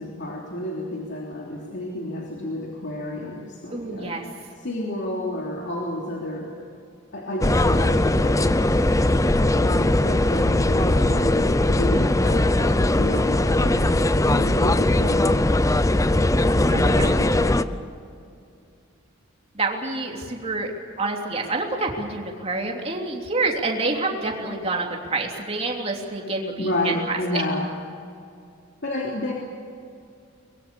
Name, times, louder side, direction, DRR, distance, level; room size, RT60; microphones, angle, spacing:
voice 1, 0.0-4.2 4.6-6.5 7.1-8.7 9.5-15.5 16.5-17.6 26.6-27.6 28.8-29.3, left 1 dB, 55° left, -2 dB, 3.2 m, -30 dB
voice 2, 3.7-4.2 16.7-17.1 19.5-20.7 21.0-26.7 27.1-27.4, right 3 dB, 30° right, 0 dB, 3.2 m, -27 dB
sound 1, 7.4-17.6, left 1 dB, 15° left, 0.6 m, -20 dB
23.5 x 22.0 x 7.1 m, 2.5 s
head